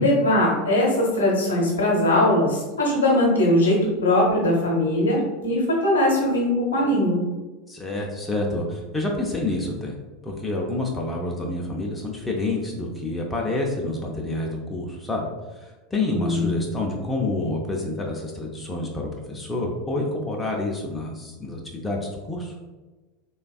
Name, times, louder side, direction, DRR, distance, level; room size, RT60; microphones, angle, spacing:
voice 1, 0.0-7.2 16.1-16.6, left 1 dB, 75° left, -3 dB, 0.8 m, -20 dB
voice 2, 7.7-10.0 10.2-15.3 15.5-22.5, left 2 dB, 10° left, -1 dB, 0.5 m, -28 dB
3.4 x 2.3 x 2.3 m, 1.2 s
figure-of-eight pair, 80°, 0 cm